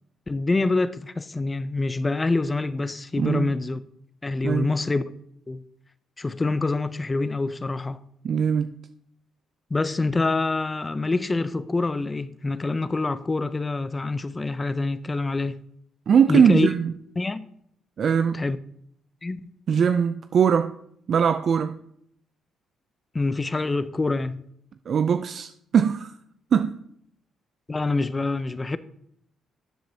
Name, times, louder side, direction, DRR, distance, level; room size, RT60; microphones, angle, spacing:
voice 1, 0.3-3.8 4.2-5.0 5.5-5.6 6.2-8.0 9.7-15.6 16.3-16.7 17.2-17.4 18.3-18.6 19.2-19.5 23.1-24.4 27.7-28.8, left 3 dB, 25° left, 0.5 m, -26 dB
voice 2, 3.2-3.6 4.4-4.7 8.2-8.7 16.1-16.9 18.0-18.4 19.7-20.7 21.1-21.8 24.9-26.1 26.5-26.8, right 7 dB, 55° right, 0.4 m, -21 dB
12.5 x 7.5 x 2.8 m
cardioid pair, 90°, 0 cm